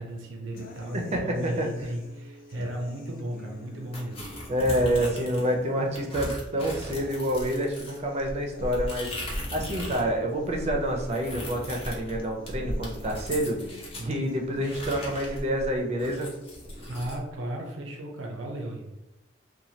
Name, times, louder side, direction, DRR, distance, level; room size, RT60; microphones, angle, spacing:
voice 1, 0.0-4.3 16.9-18.9, right 1 dB, 90° right, 1 dB, 0.5 m, -35 dB
sound 1, 0.5-16.6, left 2 dB, 50° left, 0.4 m, -48 dB
voice 2, 0.9-1.7 4.5-16.3, equal, 35° right, 2 dB, 0.4 m, -28 dB
sound 2, 3.9-5.5 5.9-10.1 10.4-14.1 14.6-17.2, left 1 dB, 30° left, 0.7 m, -37 dB
3.0 x 2.2 x 2.7 m, 0.99 s
head